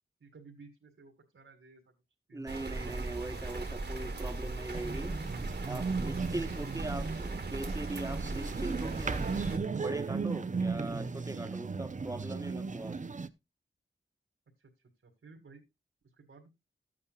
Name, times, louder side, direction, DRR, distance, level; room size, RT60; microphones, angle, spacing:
voice 1, 0.2-1.9 2.3-2.7 7.0-7.3 14.6-15.7 16.2-16.5, right 4 dB, 75° right, 2.1 m, -56 dB
voice 2, 2.3-5.2 5.7-9.3 9.8-13.0, right 2 dB, 15° right, 1.2 m, -40 dB
sound 1, 2.5-9.6, right 2 dB, 55° right, 1.6 m, -38 dB
sound 2, 4.7-13.3, right 4 dB, 40° right, 0.6 m, -36 dB
14.0 x 8.5 x 2.3 m
wide cardioid pair, 90°, 21 cm